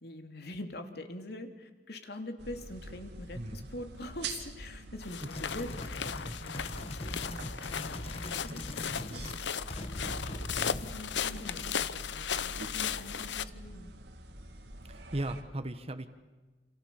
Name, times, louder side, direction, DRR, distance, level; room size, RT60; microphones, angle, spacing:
voice 1, 0.0-7.6 7.9-9.8 10.7-13.9, left 1 dB, 60° left, 6 dB, 3.0 m, -44 dB
sound 1, 2.4-15.4, right 2 dB, 65° right, 2.5 m, -46 dB
voice 2, 3.3-3.7 14.9-16.1, right 1 dB, 35° right, 8 dB, 1.3 m, -37 dB
sound 2, 5.0-13.4, left 8 dB, 80° left, 0.9 m, -36 dB
sound 3, 5.2-9.4 9.7-11.0, left 1 dB, 35° left, 1.3 m, -41 dB
29.0 x 28.0 x 7.1 m, 1.2 s
head